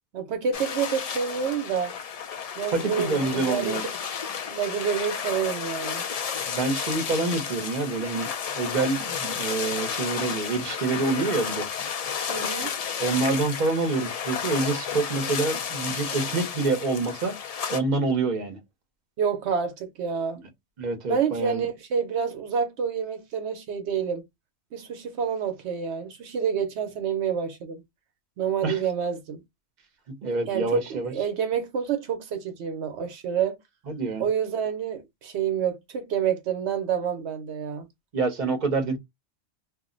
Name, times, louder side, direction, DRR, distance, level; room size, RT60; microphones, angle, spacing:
voice 1, 0.1-1.9 2.6-3.8 4.5-6.0 12.3-12.7 19.2-20.4 21.1-24.2 24.7-27.8 28.4-29.4 30.5-33.6 34.2-37.9, right 7 dB, 75° right, 0.9 m, -28 dB
sound 1, 0.5-17.8, left 7 dB, 65° left, 0.3 m, -32 dB
voice 2, 2.7-3.8 6.5-11.7 13.0-17.4 17.7-18.6 20.8-21.7 28.6-28.8 30.2-31.1 33.9-34.3 38.1-39.0, right 3 dB, 45° right, 0.8 m, -27 dB
2.4 x 2.0 x 3.7 m
omnidirectional pair, 1.2 m